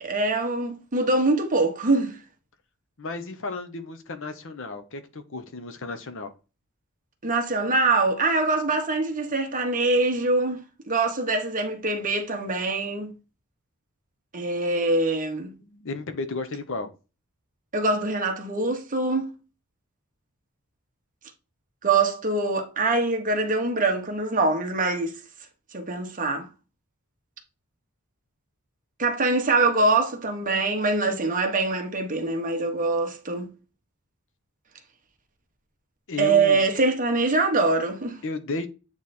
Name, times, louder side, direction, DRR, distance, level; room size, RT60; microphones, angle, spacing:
voice 1, 0.0-2.2 7.2-13.1 14.3-15.5 17.7-19.3 21.8-25.2 25.7-26.5 29.0-33.5 36.2-38.2, right 3 dB, 40° right, 1.2 m, -24 dB
voice 2, 3.0-6.3 15.6-16.9 36.1-36.6 38.2-38.7, left 3 dB, 60° left, 1.0 m, -33 dB
8.5 x 3.3 x 4.2 m
head